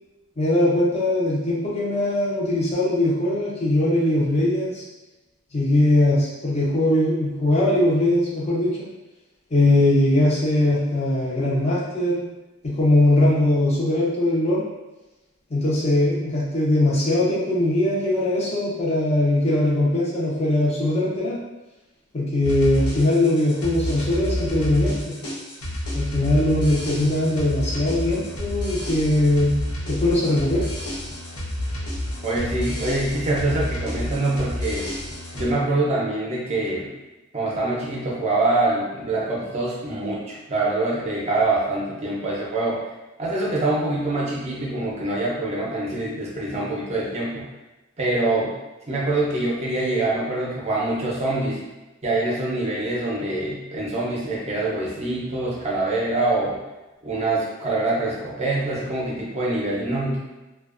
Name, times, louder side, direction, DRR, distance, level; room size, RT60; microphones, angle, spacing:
voice 1, 0.4-4.8 5.5-8.9 9.5-12.2 12.6-14.6 15.5-21.4 22.1-25.2 25.9-29.6 29.9-30.7, left 1 dB, 30° left, -6 dB, 0.6 m, -21 dB
sound 1, 22.4-35.5, left 1 dB, 90° left, 0.6 m, -30 dB
voice 2, 32.2-34.9 35.3-36.9 37.3-42.8 43.2-47.5 48.0-48.5 48.9-51.6 52.0-56.6 57.0-60.2, right 2 dB, 30° right, -4 dB, 0.5 m, -25 dB
2.5 x 2.2 x 2.4 m, 1.0 s
head